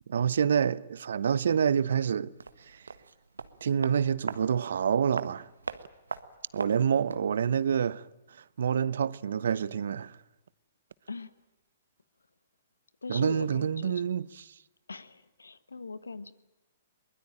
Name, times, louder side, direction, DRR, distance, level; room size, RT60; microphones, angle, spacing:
voice 1, 0.1-2.3 2.7-2.8 3.6-5.5 6.5-8.1 8.6-10.2 13.1-14.3, right 7 dB, 65° right, 0.9 m, -27 dB
sound 1, 2.4-7.4 7.6-7.7, right 4 dB, 85° right, 1.5 m, -41 dB
voice 2, 13.0-14.0 14.9-16.3, left 4 dB, 85° left, 1.4 m, -40 dB
23.0 x 21.0 x 9.0 m
figure-of-eight pair, 120°, 0 cm